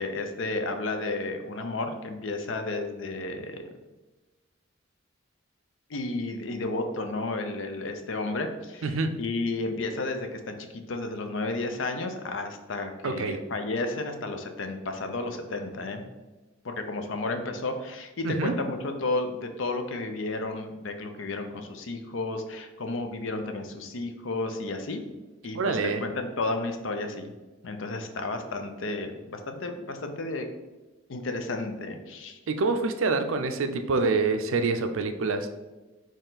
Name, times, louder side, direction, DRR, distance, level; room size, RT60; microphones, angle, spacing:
voice 1, 0.0-3.6 5.9-8.9 9.2-16.0 16.6-25.0 25.4-27.3 27.6-30.5 31.1-32.4, left 2 dB, 70° left, 6 dB, 0.5 m, -32 dB
voice 2, 8.8-9.1 13.0-13.4 18.2-18.5 25.5-26.0 32.5-35.5, right 3 dB, 80° right, 8 dB, 0.5 m, -26 dB
4.4 x 3.1 x 3.9 m, 1.1 s
head